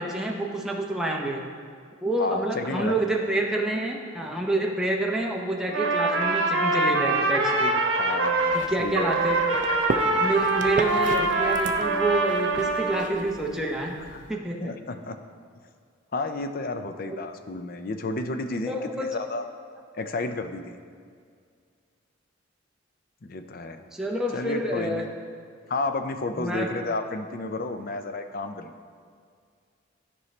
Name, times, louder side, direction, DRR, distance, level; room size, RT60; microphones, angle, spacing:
voice 1, 0.0-1.4 2.0-7.8 8.5-9.4 10.2-14.0 14.3-14.6 17.1-17.2 18.7-19.2 23.9-25.0 26.4-26.7, right 1 dB, 5° right, -2 dB, 0.7 m, -28 dB
voice 2, 2.2-3.3 8.0-9.3 14.0-14.2 14.6-15.2 16.1-19.5 19.9-20.8 23.2-23.8 24.3-25.0 25.7-28.8, left 2 dB, 45° left, 8 dB, 0.5 m, -32 dB
Trumpet, 5.7-8.6 8.9-13.1, right 2 dB, 80° right, 1.0 m, -24 dB
sound 1, 8.4-14.3, right 3 dB, 40° right, 0.4 m, -36 dB
12.5 x 5.4 x 3.2 m, 2.2 s
head